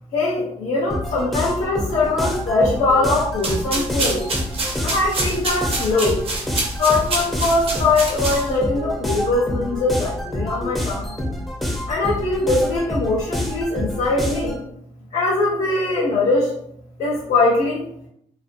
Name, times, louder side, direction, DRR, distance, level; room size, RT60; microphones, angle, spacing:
voice 1, 0.1-4.2 4.8-6.2 6.8-11.1 11.9-14.6 15.1-16.5 17.0-17.9, left 2 dB, 70° left, -5 dB, 0.6 m, -21 dB
sound 1, 0.9-14.6, left 1 dB, ahead, 0.4 m, -28 dB
sound 2, 3.3-8.7, right 2 dB, 45° right, 0.6 m, -27 dB
2.4 x 2.2 x 2.5 m, 0.72 s
cardioid pair, 150°, 13 cm